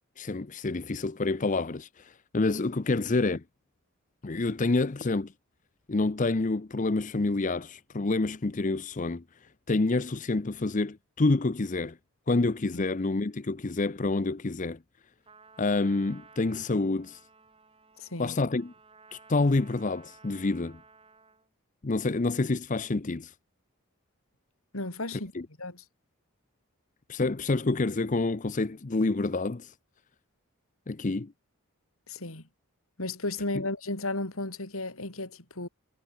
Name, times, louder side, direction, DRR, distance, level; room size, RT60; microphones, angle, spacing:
voice 1, 0.2-3.4 4.2-5.3 5.9-12.0 12.3-14.8 15.6-17.2 18.2-18.7 19.1-20.8 21.8-23.3 25.3-25.5 27.1-29.7 30.9-31.3 33.5-33.6, left 3 dB, 35° left, 0.6 m, -28 dB
Trumpet, 15.3-21.5, right 4 dB, 25° right, 6.7 m, -56 dB
voice 2, 18.0-18.4 24.7-25.3 25.6-25.8 32.1-32.4 33.0-35.7, left 2 dB, 70° left, 4.0 m, -34 dB
head